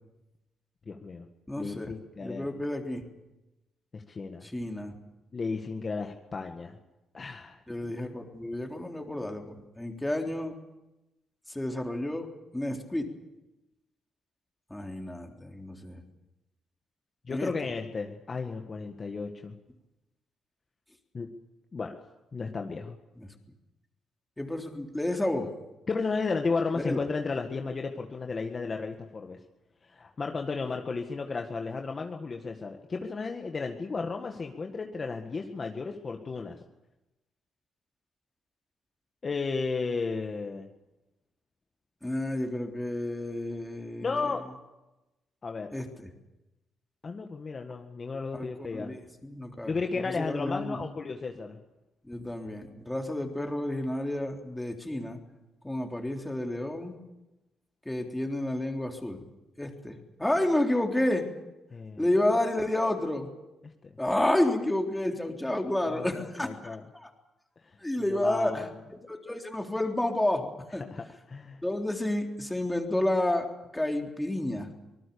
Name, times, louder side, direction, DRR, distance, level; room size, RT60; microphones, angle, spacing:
voice 1, 0.9-1.3 1.6-2.5 3.9-4.5 5.3-6.8 7.1-7.6 17.3-19.5 21.1-21.3 21.7-22.0 22.3-23.0 25.9-29.4 29.8-36.6 39.2-40.7 44.0-44.5 45.4-45.7 47.0-48.9 49.7-51.6 61.7-62.0 63.8-63.9 65.8-66.8 67.6-67.8 68.1-68.7 70.9-71.6, left 4 dB, 35° left, 4 dB, 1.8 m, -34 dB
voice 2, 1.5-1.9 2.2-3.0 4.4-5.0 7.7-10.6 11.5-12.3 12.5-13.1 14.7-16.0 17.3-17.5 23.2-23.3 24.4-25.5 26.8-27.0 42.0-44.4 45.7-46.1 48.3-50.8 52.0-55.2 55.6-57.0 57.9-59.2 59.6-61.3 62.0-63.3 64.0-67.1 67.8-68.7 69.0-70.8 71.6-73.5 73.7-74.7, left 1 dB, 10° left, 3 dB, 3.5 m, -30 dB
25.5 x 19.0 x 7.0 m, 0.99 s
cardioid pair, 90°, 0 cm